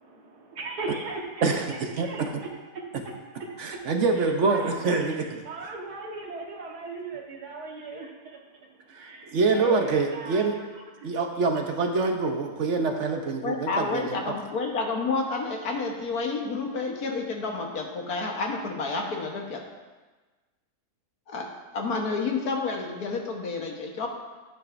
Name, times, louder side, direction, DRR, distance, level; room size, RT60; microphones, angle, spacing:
voice 1, 0.0-2.2 2.7-3.1 3.4-11.1, right 3 dB, 85° right, -1 dB, 1.9 m, -39 dB
voice 2, 3.6-5.2 9.0-9.1 9.3-10.5 11.0-14.2, right 4 dB, 55° right, 4 dB, 1.0 m, -25 dB
voice 3, 13.4-19.6 21.3-21.5 21.7-24.1, left 4 dB, 75° left, 1 dB, 1.7 m, -30 dB
12.0 x 9.3 x 2.6 m, 1.3 s
omnidirectional pair, 1.6 m